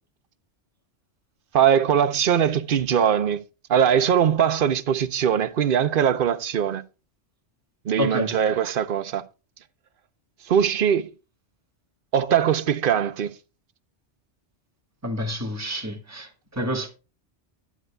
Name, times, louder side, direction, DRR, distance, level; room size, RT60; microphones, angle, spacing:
voice 1, 1.5-3.4 3.7-6.8 7.8-9.2 10.4-11.1 12.1-13.3, right 8 dB, 55° right, 0.9 m, -21 dB
voice 2, 8.0-8.3 15.0-16.9, equal, 15° right, 1.7 m, -29 dB
12.0 x 10.5 x 2.3 m
omnidirectional pair, 1.2 m